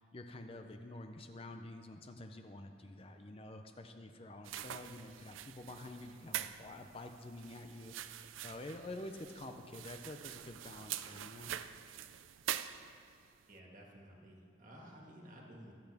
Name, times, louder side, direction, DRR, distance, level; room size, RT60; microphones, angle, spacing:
voice 1, 0.0-11.5, left 2 dB, 30° left, 5 dB, 0.5 m, -48 dB
sound 1, 4.4-13.2, right 11 dB, 85° right, 0.4 m, -45 dB
voice 2, 13.5-15.7, equal, 40° right, -1 dB, 1.8 m, -54 dB
23.5 x 8.0 x 3.5 m, 2.6 s
head